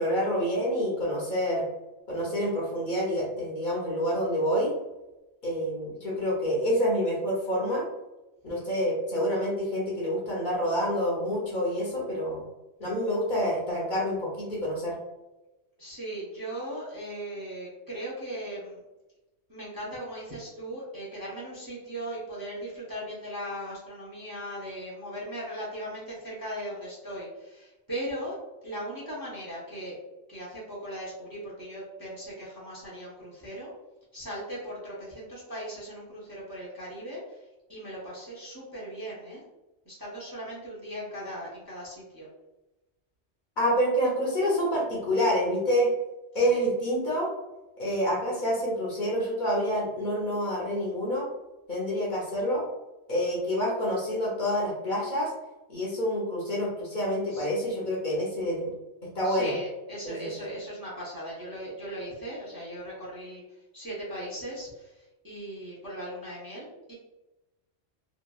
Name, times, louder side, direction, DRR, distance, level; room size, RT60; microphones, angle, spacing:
voice 1, 0.0-1.6 2.1-4.7 5.4-7.8 8.4-12.4 12.8-15.0 43.6-45.9 46.3-47.3 47.8-51.3 51.7-52.6 53.1-55.3 55.7-58.7 59.0-59.5 60.0-60.3, equal, 50° left, -4 dB, 0.7 m, -27 dB
voice 2, 15.8-18.8 19.5-28.4 28.6-30.0 30.3-33.7 34.1-39.4 39.8-42.3 46.3-46.7 57.3-57.5 59.2-63.4 63.7-66.9, equal, 25° right, -7 dB, 0.6 m, -38 dB
2.8 x 2.5 x 2.2 m, 1.0 s
omnidirectional pair, 1.2 m